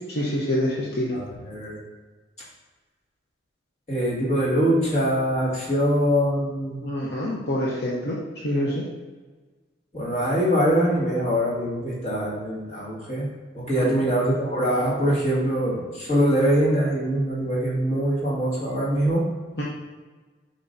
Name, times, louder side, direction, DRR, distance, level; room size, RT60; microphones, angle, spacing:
voice 1, 0.1-1.2 6.8-8.2 8.4-8.8 13.7-14.1 19.6-19.7, left 1 dB, 55° left, -5 dB, 0.8 m, -26 dB
voice 2, 1.1-1.8 3.9-6.8 9.9-13.3 13.5-19.3, equal, 35° left, -6 dB, 1.9 m, -23 dB
7.0 x 5.3 x 2.7 m, 1.4 s
head